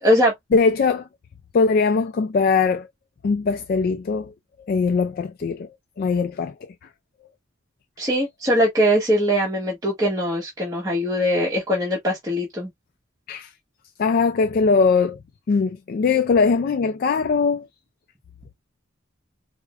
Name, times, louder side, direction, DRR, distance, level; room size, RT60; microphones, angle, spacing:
voice 1, 0.0-0.3 8.0-12.7, equal, 20° right, 1.1 m, -21 dB
voice 2, 0.5-1.1 1.5-2.9 3.2-4.3 4.7-5.7 6.0-6.7 13.3-13.5 14.0-15.2 15.5-17.7, left 4 dB, 45° left, 0.3 m, -20 dB
4.7 x 2.1 x 2.4 m
head